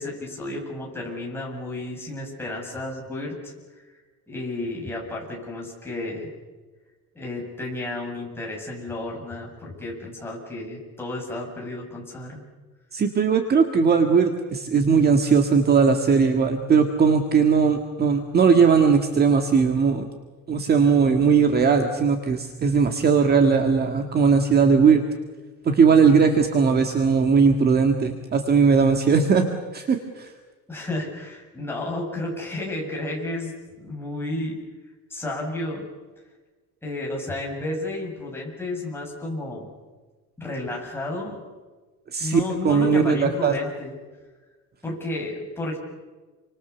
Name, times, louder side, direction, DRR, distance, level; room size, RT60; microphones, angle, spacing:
voice 1, 0.0-3.8 4.3-6.3 7.2-12.4 30.7-33.5 33.8-34.6 35.1-35.8 36.8-39.7 40.4-41.4 42.2-43.9 44.8-45.8, left 2 dB, 5° left, -2 dB, 7.5 m, -32 dB
voice 2, 12.9-20.1 20.5-25.0 25.7-29.5 29.7-30.3 42.1-43.5, right 5 dB, 30° right, 5 dB, 1.9 m, -19 dB
29.0 x 25.5 x 7.0 m, 1.3 s
cardioid pair, 170°, 33 cm